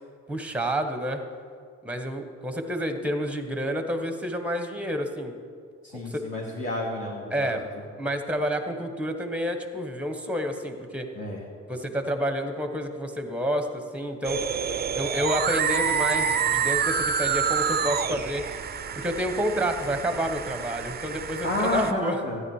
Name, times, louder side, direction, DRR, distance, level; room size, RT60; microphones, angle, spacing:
voice 1, 0.3-1.2 1.8-5.3 5.9-6.2 7.3-7.7 8.0-11.1 11.7-14.4 14.9-18.4 18.9-22.2, equal, 5° right, 6 dB, 1.2 m, -29 dB
voice 2, 5.8-7.6 11.2-11.4 21.4-22.4, left 2 dB, 40° left, -4 dB, 2.2 m, -30 dB
sound 1, 14.2-21.9, right 7 dB, 35° right, 0.5 m, -28 dB
13.5 x 10.0 x 4.8 m, 2.2 s
cardioid pair, 90°, 30 cm